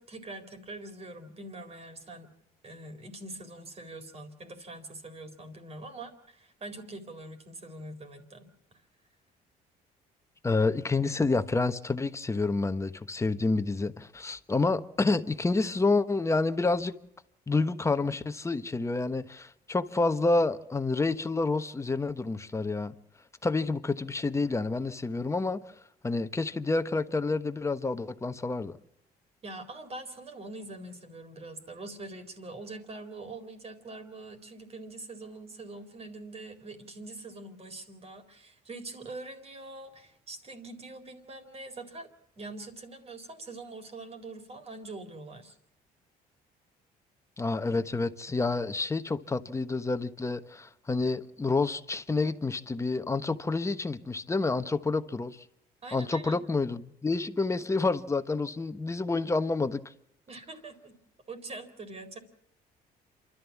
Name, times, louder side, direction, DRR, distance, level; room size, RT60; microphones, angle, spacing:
voice 1, 0.0-2.3 2.6-8.5 29.4-42.1 42.4-45.6 55.8-56.4 60.3-61.0 61.3-62.2, right 2 dB, 35° right, 4.0 m, -44 dB
voice 2, 10.4-16.9 17.5-22.9 23.4-25.6 26.0-28.8 47.4-55.4 55.9-59.8, left 3 dB, 15° left, 1.2 m, -28 dB
28.0 x 13.0 x 7.2 m
cardioid pair, 110°, 17 cm